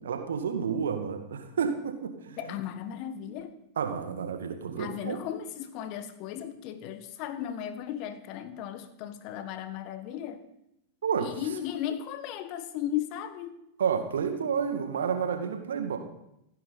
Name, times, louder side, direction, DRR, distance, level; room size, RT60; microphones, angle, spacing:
voice 1, 0.0-2.4 3.8-5.2 11.0-11.3 13.8-16.0, right 7 dB, 65° right, 2.0 m, -30 dB
voice 2, 2.4-3.5 4.8-10.4 11.2-13.6, left 10 dB, 40° left, 1.4 m, -36 dB
27.5 x 10.0 x 4.1 m
figure-of-eight pair, 90°, 0 cm